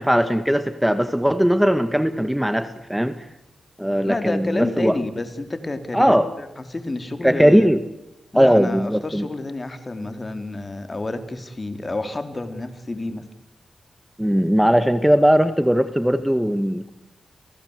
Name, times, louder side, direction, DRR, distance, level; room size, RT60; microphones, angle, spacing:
voice 1, 0.0-3.2 3.8-5.0 5.9-6.3 7.2-7.8 8.3-9.3 14.2-16.9, equal, 5° right, 11 dB, 1.7 m, -19 dB
voice 2, 4.1-7.7 8.3-13.2, left 2 dB, 35° left, 8 dB, 4.0 m, -29 dB
30.0 x 18.0 x 8.3 m, 0.90 s
cardioid pair, 50°, 0 cm